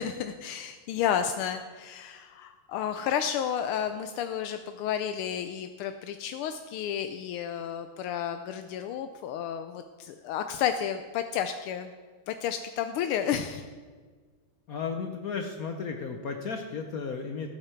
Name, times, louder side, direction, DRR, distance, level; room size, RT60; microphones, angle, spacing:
voice 1, 0.0-11.9 12.3-13.7, left 9 dB, 85° left, 8 dB, 1.5 m, -31 dB
voice 2, 14.7-17.5, left 5 dB, 65° left, 4 dB, 0.9 m, -34 dB
13.0 x 8.8 x 4.5 m, 1.5 s
omnidirectional pair, 2.4 m